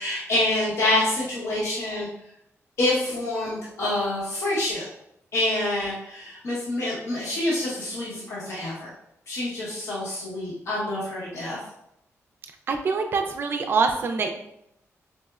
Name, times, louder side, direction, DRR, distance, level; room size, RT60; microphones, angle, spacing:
voice 1, 0.0-2.1 2.8-4.8 5.3-8.9 9.3-11.6, left 1 dB, 60° left, -7 dB, 0.9 m, -27 dB
voice 2, 12.7-14.3, right 4 dB, 45° right, 4 dB, 0.3 m, -24 dB
4.1 x 2.0 x 2.3 m, 0.79 s
wide cardioid pair, 130°, 5 cm